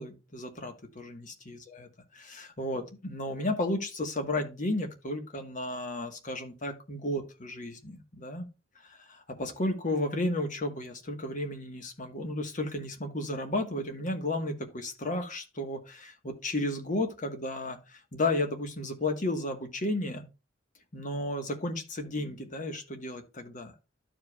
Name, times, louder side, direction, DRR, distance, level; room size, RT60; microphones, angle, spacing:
voice 1, 0.0-1.9 2.1-8.5 8.9-20.2 20.9-23.7, left 1 dB, 45° left, 1.3 m, -33 dB
12.5 x 4.9 x 2.3 m
head